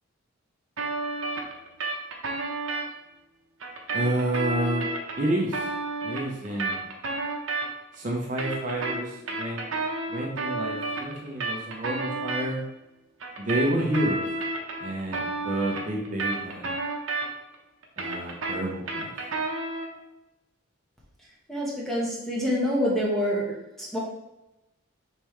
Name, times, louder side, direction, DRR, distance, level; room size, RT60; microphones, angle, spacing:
sound 1, 0.8-2.9 3.6-7.9 8.2-12.5 13.2-17.5 17.8-20.0, right 3 dB, 70° right, 0.8 m, -31 dB
voice 1, 3.9-4.8 5.2-5.7 6.0-6.8 7.9-9.6 10.1-12.6 13.4-14.2 14.8-16.7 18.0-19.1, right 1 dB, 40° right, -2 dB, 0.7 m, -29 dB
voice 2, 21.5-23.4 23.8-24.0, equal, ahead, -5 dB, 1.0 m, -26 dB
5.3 x 3.2 x 3.1 m, 0.94 s
head